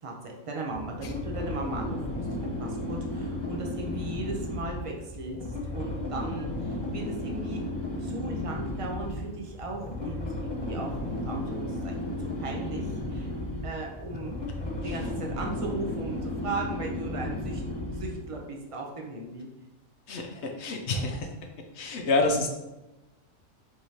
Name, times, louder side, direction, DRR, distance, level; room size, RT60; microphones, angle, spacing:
voice 1, 0.0-5.4 5.7-7.6 8.0-12.1 12.4-13.3 13.6-14.4 14.8-19.5, right 2 dB, 45° right, 1 dB, 0.4 m, -37 dB
sound 1, 0.8-18.3, left 1 dB, 25° left, 0.6 m, -34 dB
sound 2, 9.4-17.1, right 1 dB, 70° right, 1.3 m, -51 dB
voice 2, 20.1-21.3 21.7-22.5, left 2 dB, 60° left, 3 dB, 0.8 m, -28 dB
4.7 x 3.6 x 2.8 m, 1.0 s
omnidirectional pair, 1.5 m